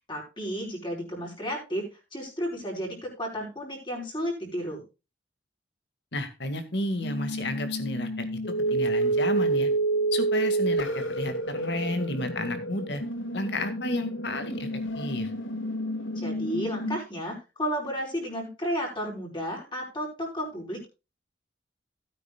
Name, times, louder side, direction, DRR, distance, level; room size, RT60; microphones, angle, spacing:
voice 1, 0.1-4.8 16.2-20.9, equal, 25° left, -1 dB, 4.9 m, -33 dB
voice 2, 6.1-8.3 8.7-9.7 10.1-13.0 13.3-14.7 15.0-15.3, left 1 dB, 60° left, 9 dB, 2.1 m, -32 dB
sound 1, 7.0-17.0, right 2 dB, 75° left, 1.8 m, -29 dB
17.0 x 9.2 x 2.4 m, 0.28 s
head